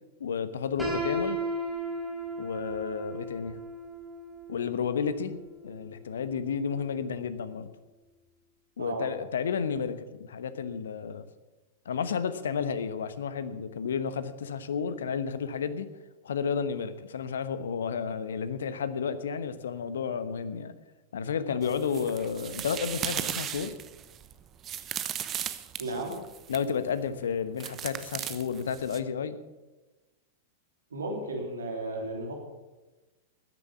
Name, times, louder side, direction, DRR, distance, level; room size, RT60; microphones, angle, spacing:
voice 1, 0.2-1.4 2.4-3.6 4.5-7.7 8.8-11.2 11.8-15.9 16.2-20.7 21.1-23.7 26.5-29.4, left 6 dB, 65° left, 12 dB, 1.0 m, -32 dB
Piano, 0.8-6.7, right 1 dB, ahead, 4.9 m, -36 dB
sound 1, 21.6-26.7 27.6-29.0, right 10 dB, 25° right, 0.9 m, -37 dB
voice 2, 25.8-26.1 30.9-32.3, right 2 dB, 70° right, 1 dB, 3.3 m, -34 dB
13.5 x 10.5 x 7.1 m, 1.1 s
figure-of-eight pair, 95°, 0 cm